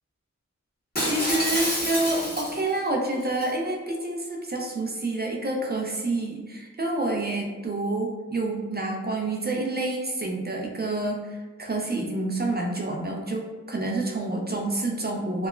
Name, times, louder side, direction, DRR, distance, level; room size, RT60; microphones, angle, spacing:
Shatter, 1.0-2.8 3.2-3.5, equal, 30° left, 1.1 m, -28 dB
voice 1, 1.0-15.5, right 2 dB, 35° right, 0 dB, 0.4 m, -28 dB
2.9 x 2.1 x 2.4 m, 1.3 s
cardioid pair, 45°, 30 cm